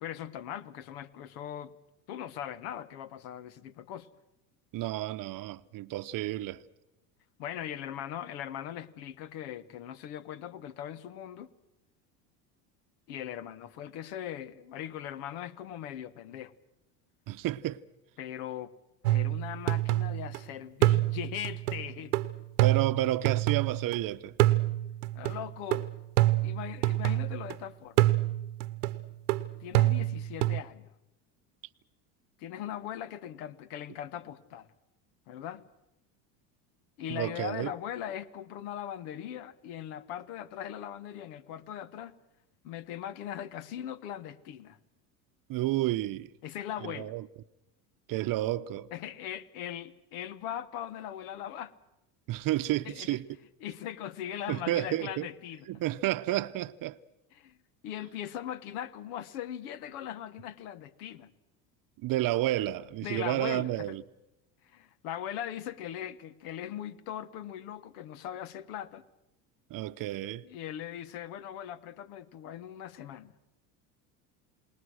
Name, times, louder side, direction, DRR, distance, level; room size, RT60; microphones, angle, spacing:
voice 1, 0.0-1.8 2.1-4.1 7.4-11.5 13.1-16.5 18.2-18.7 19.0-22.1 25.1-25.9 26.4-28.1 29.6-30.9 32.4-34.7 35.3-35.7 37.0-42.2 42.6-44.8 46.4-47.1 48.9-51.7 52.8-53.2 53.6-55.8 57.3-57.6 57.8-61.3 63.0-64.0 64.6-69.0 70.4-73.3, left 10 dB, 75° left, 1.3 m, -40 dB
voice 2, 4.7-6.6 17.3-17.8 22.6-24.3 37.1-37.7 45.5-46.3 46.8-47.3 48.1-48.9 52.3-53.3 54.5-55.3 55.7-57.0 62.0-64.0 69.7-70.4, right 15 dB, 45° right, 0.8 m, -31 dB
sound 1, 19.0-20.4 20.8-24.0 24.4-27.5 28.0-30.6, right 16 dB, 90° right, 1.0 m, -27 dB
28.5 x 19.5 x 6.4 m
supercardioid pair, 95°, 45 cm